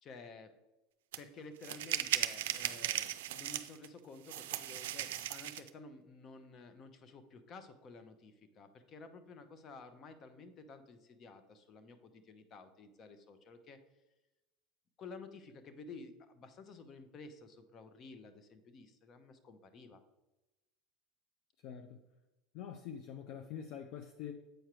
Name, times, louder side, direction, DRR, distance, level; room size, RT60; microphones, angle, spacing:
voice 1, 0.0-0.5 1.2-13.8 15.0-20.0, left 3 dB, 40° left, 9 dB, 0.8 m, -53 dB
sound 1, 1.1-1.2 1.6-3.9 4.3-5.7, right 13 dB, 80° right, 0.4 m, -37 dB
voice 2, 21.6-22.0 22.5-24.3, left 8 dB, 60° left, 6 dB, 0.5 m, -45 dB
7.8 x 4.7 x 3.0 m, 1.0 s
supercardioid pair, 100°, 0 cm